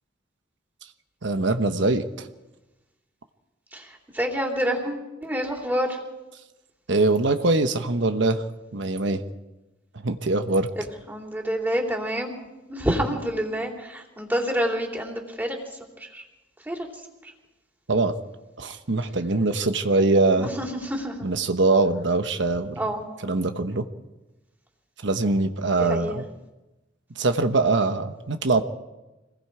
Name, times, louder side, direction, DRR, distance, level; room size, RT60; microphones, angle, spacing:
voice 1, 1.2-2.3 6.9-8.4 8.7-9.2 10.0-10.7 17.9-18.1 18.6-20.5 21.2-22.8 23.2-23.8 25.0-26.2 27.2-28.6, right 3 dB, 70° right, 8 dB, 1.1 m, -22 dB
voice 2, 3.7-6.0 10.8-12.3 12.7-15.6 16.0-16.2 16.6-16.9 17.2-17.3 20.4-21.3 22.8-23.0 25.8-26.2, equal, 10° right, 0 dB, 3.4 m, -28 dB
26.5 x 20.5 x 4.9 m, 1.1 s
head